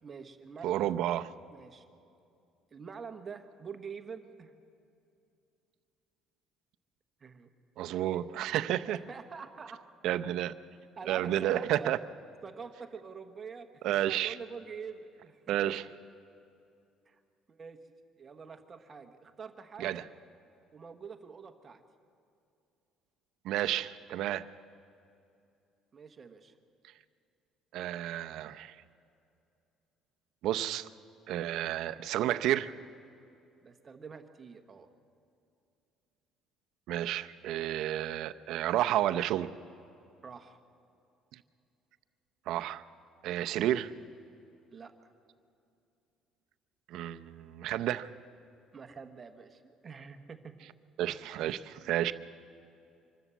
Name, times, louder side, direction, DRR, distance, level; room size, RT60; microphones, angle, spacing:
voice 1, 0.0-0.9 1.5-1.8 2.7-4.5 7.2-7.5 7.9-8.2 8.9-9.8 11.0-11.9 12.4-15.7 17.1-17.2 17.5-17.8 18.2-20.1 20.7-21.8 25.9-26.6 33.6-34.9 40.2-40.6 44.7-45.1 48.7-50.6, right 5 dB, 25° right, 7 dB, 1.2 m, -46 dB
voice 2, 0.6-1.3 7.8-9.0 10.0-10.5 11.1-12.0 13.8-14.4 15.5-15.8 19.8-20.0 23.4-24.5 27.7-28.8 30.4-30.9 31.3-32.7 36.9-39.5 42.5-42.8 43.2-43.9 46.9-48.1 51.0-52.1, right 12 dB, 65° right, 11 dB, 0.7 m, -31 dB
25.0 x 13.5 x 8.2 m, 2.7 s
cardioid pair, 155°, 0 cm